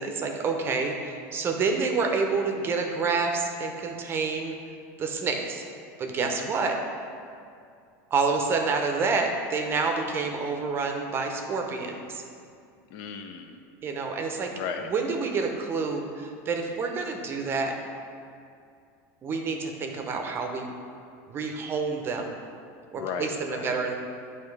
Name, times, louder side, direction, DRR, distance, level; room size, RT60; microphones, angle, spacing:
voice 1, 0.0-4.5 5.0-5.6 6.0-6.8 8.1-12.2 13.8-14.5 14.9-17.7 19.2-20.7 21.3-22.3 22.9-23.9, right 4 dB, 30° right, 3 dB, 0.6 m, -28 dB
voice 2, 6.2-6.5 12.9-13.6 14.5-14.9 22.9-23.7, left 6 dB, 55° left, 5 dB, 0.6 m, -35 dB
8.4 x 2.9 x 4.7 m, 2.4 s
supercardioid pair, 135°, 8 cm